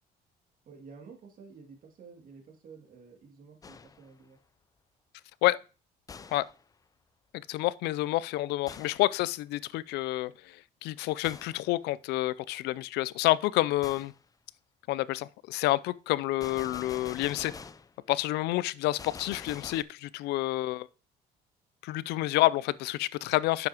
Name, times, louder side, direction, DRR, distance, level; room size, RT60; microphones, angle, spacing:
voice 1, 0.7-4.4, right 5 dB, 55° right, 2.4 m, -51 dB
Gunshot gunfire, 3.6-4.1 6.1-6.6 8.7-9.1 11.2-11.7 13.8-14.2 16.4-17.9 19.0-19.8, left 5 dB, 20° left, 0.4 m, -45 dB
voice 2, 7.5-14.1 14.9-17.5 18.1-20.9 21.8-23.7, left 17 dB, 85° left, 0.4 m, -29 dB
9.4 x 6.9 x 2.9 m
cardioid pair, 110°, 17 cm